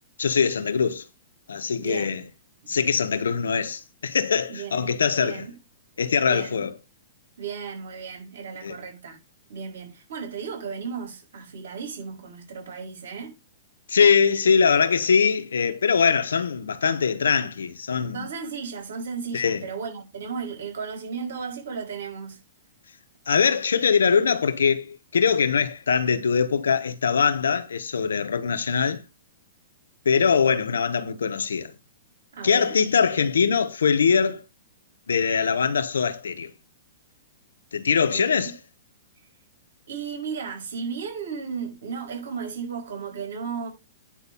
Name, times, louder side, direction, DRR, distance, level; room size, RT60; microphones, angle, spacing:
voice 1, 0.2-1.0 1.5-2.2 2.7-5.5 6.0-6.7 8.6-8.8 13.9-18.3 19.3-19.7 23.3-29.0 30.0-31.7 32.4-34.4 35.1-36.5 37.7-38.6, left 6 dB, 85° left, 1.1 m, -22 dB
voice 2, 1.8-2.2 2.6-2.7 4.5-5.5 6.2-6.7 7.4-9.2 9.5-13.3 18.1-22.4 32.3-32.7 38.0-38.5 39.9-43.7, right 6 dB, 75° right, 4.7 m, -35 dB
10.0 x 4.0 x 5.4 m
hypercardioid pair, 125°, 0 cm